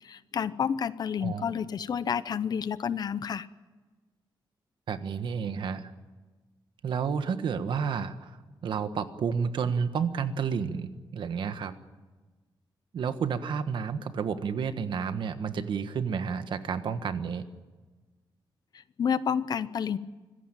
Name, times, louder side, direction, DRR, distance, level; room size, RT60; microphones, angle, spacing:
voice 1, 0.0-3.5 18.7-20.0, left 7 dB, 50° left, 15 dB, 0.8 m, -30 dB
voice 2, 1.2-1.5 4.9-5.9 6.8-8.4 8.6-11.7 12.9-17.4, right 6 dB, 65° right, 10 dB, 1.4 m, -31 dB
25.5 x 15.5 x 9.0 m, 1.3 s
wide cardioid pair, 175°, 9 cm